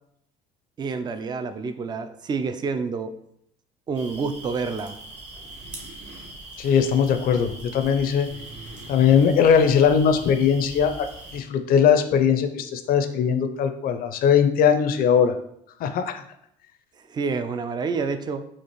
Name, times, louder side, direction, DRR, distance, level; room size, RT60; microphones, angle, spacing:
voice 1, 0.8-3.2 3.9-5.0 17.1-18.5, right 4 dB, 25° right, 10 dB, 0.4 m, -28 dB
sound 1, 3.9-11.4, right 2 dB, 45° right, 1.2 m, -41 dB
voice 2, 6.6-8.3 8.9-11.1 11.3-15.3 15.8-16.2, left 7 dB, 55° left, 8 dB, 0.5 m, -20 dB
4.3 x 2.4 x 3.0 m, 0.73 s
supercardioid pair, 80°, 17 cm